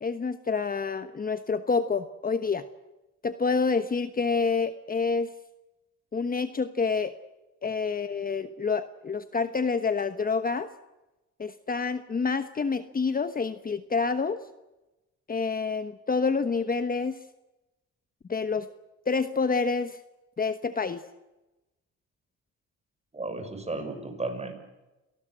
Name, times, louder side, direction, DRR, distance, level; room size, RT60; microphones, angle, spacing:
voice 1, 0.0-2.6 3.2-5.3 6.1-7.1 7.6-10.7 11.4-14.4 15.3-17.2 18.3-18.7 19.1-20.0 20.4-21.0, left 4 dB, 30° left, 10 dB, 1.1 m, -28 dB
voice 2, 23.1-24.5, right 2 dB, 20° right, 6 dB, 6.4 m, -34 dB
28.0 x 19.0 x 7.8 m, 1.0 s
cardioid pair, 90°, 30 cm